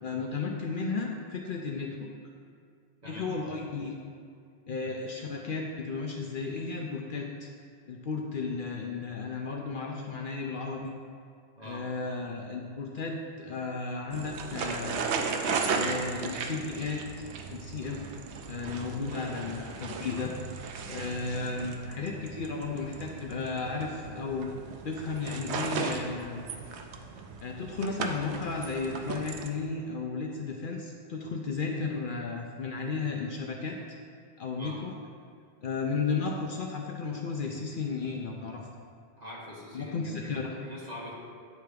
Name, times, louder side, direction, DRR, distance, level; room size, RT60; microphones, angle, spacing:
voice 1, 0.0-2.1 3.0-3.9 4.7-7.5 7.9-10.9 11.6-15.0 15.7-17.0 17.5-18.1 18.4-20.3 20.6-24.5 24.8-26.5 27.4-33.8 34.4-34.9 35.6-38.7 39.7-40.6, left 4 dB, 60° left, 0 dB, 0.7 m, -34 dB
sound 1, 14.1-29.5, right 5 dB, 80° right, 0.9 m, -36 dB
voice 2, 39.2-40.3 40.6-41.1, left 1 dB, 40° right, -5 dB, 1.5 m, -43 dB
9.2 x 3.4 x 5.0 m, 2.3 s
omnidirectional pair, 1.1 m